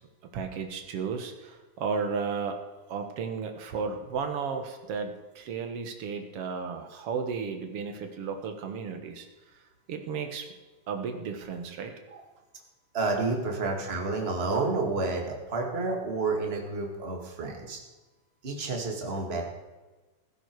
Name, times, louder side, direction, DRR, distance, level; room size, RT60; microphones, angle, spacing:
voice 1, 0.3-2.6 2.9-9.3 9.9-10.5 10.9-11.9, right 5 dB, 55° right, 6 dB, 2.0 m, -34 dB
voice 2, 12.9-17.8 18.4-19.4, right 3 dB, 20° right, 1 dB, 1.9 m, -30 dB
15.5 x 14.5 x 4.7 m, 1.2 s
omnidirectional pair, 3.7 m